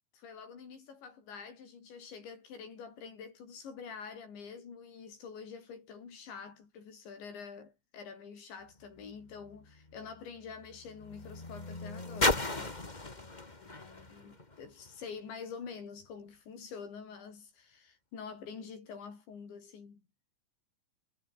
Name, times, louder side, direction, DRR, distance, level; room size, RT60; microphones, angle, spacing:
voice 1, 0.1-20.0, left 6 dB, 85° left, 7.8 m, -47 dB
sound 1, 8.7-15.2 16.0-16.1, left 2 dB, 20° left, 1.1 m, -37 dB
omnidirectional pair, 5.1 m